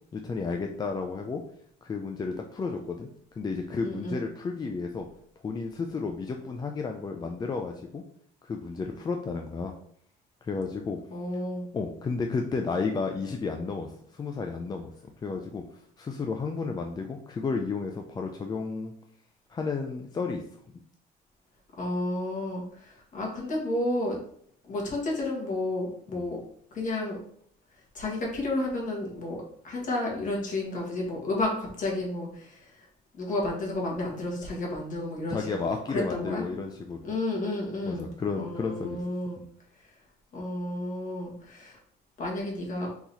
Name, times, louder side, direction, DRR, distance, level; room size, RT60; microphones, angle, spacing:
voice 1, 0.1-1.4 1.8-3.1 3.4-5.1 5.4-8.0 8.4-9.7 10.4-11.0 11.7-14.9 15.2-15.6 16.0-18.9 19.5-20.4 26.1-26.2 35.3-37.0 37.8-39.0 39.4-39.5, left 4 dB, 25° left, 3 dB, 0.4 m, -32 dB
voice 2, 3.8-4.2 11.1-11.6 21.8-24.2 24.7-26.4 26.7-27.2 27.9-32.9 33.2-36.4 37.0-38.1 38.4-39.4 40.3-41.8 42.2-42.9, left 2 dB, 50° left, -2 dB, 1.7 m, -31 dB
3.9 x 2.9 x 4.0 m, 0.64 s
cardioid pair, 110°, 17 cm